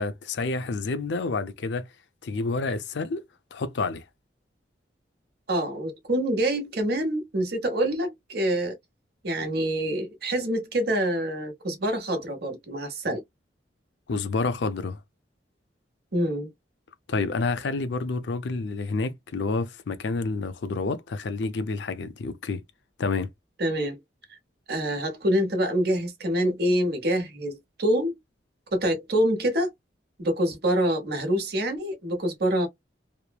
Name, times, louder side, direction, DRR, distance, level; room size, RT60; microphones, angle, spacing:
voice 1, 0.0-1.9 2.2-3.2 3.5-4.0 14.1-15.0 17.1-22.6 23.0-23.3, left 3 dB, 70° left, 0.5 m, -29 dB
voice 2, 5.5-8.7 9.2-13.2 16.1-16.5 23.6-24.0 24.3-24.4 24.7-28.2 28.7-29.7 30.2-32.7, right 1 dB, 60° right, 1.0 m, -26 dB
3.0 x 2.0 x 2.3 m
head